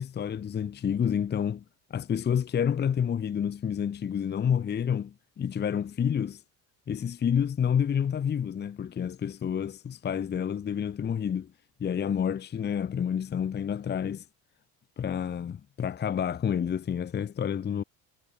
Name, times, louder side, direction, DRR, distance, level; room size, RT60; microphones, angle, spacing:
voice 1, 0.0-1.6 1.9-6.4 6.9-11.5 11.8-14.2 15.0-17.8, left 8 dB, 30° left, 0.9 m, -29 dB
supercardioid pair, 100°, 37 cm